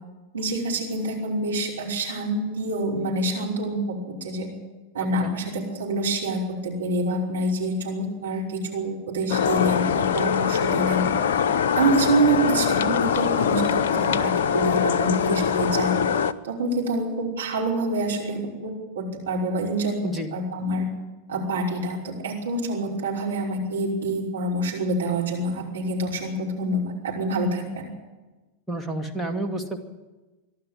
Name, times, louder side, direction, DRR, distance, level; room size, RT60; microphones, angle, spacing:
voice 1, 0.3-4.5 4.9-11.0 11.7-16.0 16.4-20.0 20.3-20.8 21.3-27.9, right 2 dB, 70° right, -2 dB, 5.5 m, -26 dB
sound 1, 9.3-16.3, left 7 dB, 55° left, 0.7 m, -23 dB
voice 2, 28.7-29.8, right 1 dB, ahead, 2 dB, 2.4 m, -30 dB
23.5 x 12.0 x 9.7 m, 1.2 s
figure-of-eight pair, 90°, 0 cm